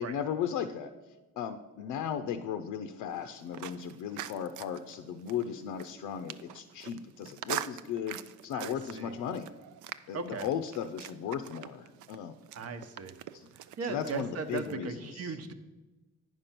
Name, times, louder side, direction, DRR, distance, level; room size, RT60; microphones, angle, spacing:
voice 1, 0.0-9.5 10.1-12.4 13.3-13.5 13.8-15.3, left 8 dB, 90° left, 7 dB, 0.5 m, -36 dB
sound 1, 3.1-14.8, right 12 dB, 75° right, 0.5 m, -44 dB
voice 2, 8.5-9.1 10.1-10.5 12.5-13.2 13.5-15.5, right 5 dB, 55° right, 9 dB, 0.9 m, -38 dB
9.4 x 5.3 x 5.8 m, 1.2 s
cardioid pair, 90°, 30 cm